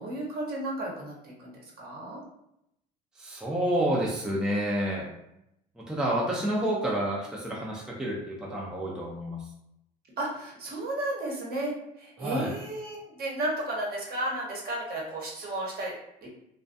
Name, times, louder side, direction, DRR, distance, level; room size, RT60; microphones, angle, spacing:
voice 1, 0.0-2.2 10.2-16.3, right 1 dB, 50° right, -3 dB, 1.0 m, -33 dB
voice 2, 3.2-5.1 5.8-9.5 12.2-12.5, right 1 dB, 5° right, -4 dB, 0.5 m, -29 dB
2.3 x 2.2 x 2.6 m, 0.81 s
supercardioid pair, 80°, 21 cm